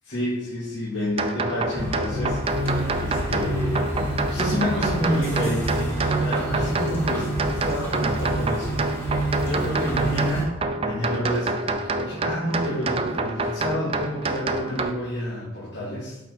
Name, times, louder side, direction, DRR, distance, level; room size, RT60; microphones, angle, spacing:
voice 1, 0.0-16.2, left 1 dB, 60° left, -9 dB, 2.4 m, -29 dB
sound 1, 1.2-14.9, right 2 dB, 30° right, 0.4 m, -28 dB
sound 2, 1.7-10.4, right 1 dB, 10° left, 1.6 m, -28 dB
8.3 x 4.1 x 5.1 m, 0.99 s
head